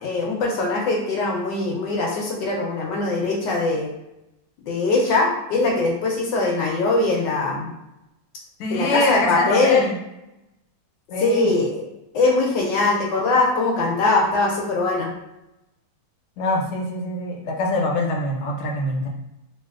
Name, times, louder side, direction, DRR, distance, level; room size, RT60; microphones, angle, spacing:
voice 1, 0.0-3.9 4.6-7.7 8.7-9.8 11.2-11.9 12.1-15.1, left 3 dB, 75° left, -2 dB, 1.1 m, -21 dB
voice 2, 8.6-10.0 11.1-11.5 16.4-19.1, left 2 dB, 90° left, 0 dB, 1.5 m, -24 dB
3.1 x 2.7 x 2.3 m, 0.90 s
omnidirectional pair, 2.3 m